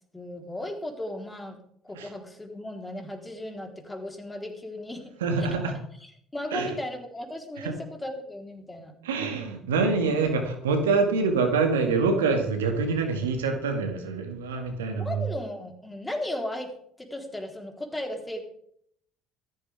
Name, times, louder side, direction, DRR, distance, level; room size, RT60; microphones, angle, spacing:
voice 1, 0.1-1.6 1.8-5.1 5.4-5.5 6.0-8.9 14.9-16.7 17.0-18.4, left 1 dB, 15° left, 3 dB, 3.7 m, -36 dB
voice 2, 5.2-5.7 6.5-6.7 7.6-7.7 9.0-15.3, right 4 dB, 80° right, 5 dB, 2.0 m, -25 dB
15.5 x 14.0 x 3.5 m, 0.67 s
hypercardioid pair, 60°, 0 cm